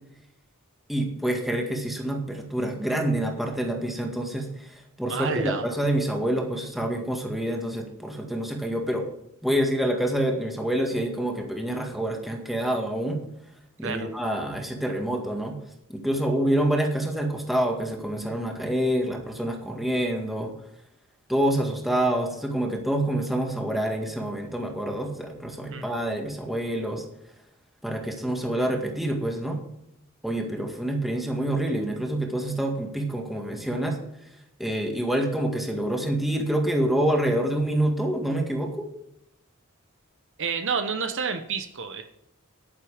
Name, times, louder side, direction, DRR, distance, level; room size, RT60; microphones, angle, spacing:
voice 1, 0.9-9.0 9.4-13.2 13.8-15.6 15.9-20.5 21.3-27.0 27.8-29.6 30.2-34.0 34.6-38.9, right 1 dB, ahead, 1 dB, 2.0 m, -27 dB
voice 2, 5.1-5.7 13.8-14.1 25.7-25.9 40.4-42.0, right 5 dB, 60° right, 7 dB, 1.0 m, -29 dB
10.0 x 9.9 x 5.0 m, 0.80 s
head